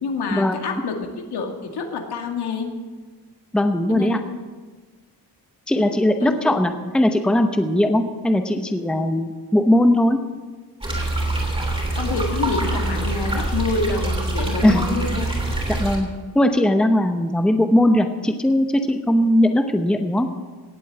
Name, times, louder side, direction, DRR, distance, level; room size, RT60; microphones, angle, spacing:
voice 1, 0.0-1.0 1.3-2.7 3.9-4.2 6.2-6.3 12.0-15.2, left 4 dB, 75° left, 3 dB, 2.3 m, -27 dB
voice 2, 3.5-4.2 5.7-10.2 14.6-15.0 15.8-16.1 16.3-20.3, left 1 dB, ahead, 6 dB, 0.8 m, -19 dB
sound 1, 10.8-16.0, right 2 dB, 15° right, 3.2 m, -24 dB
18.0 x 8.3 x 7.8 m, 1.3 s
wide cardioid pair, 180°, 39 cm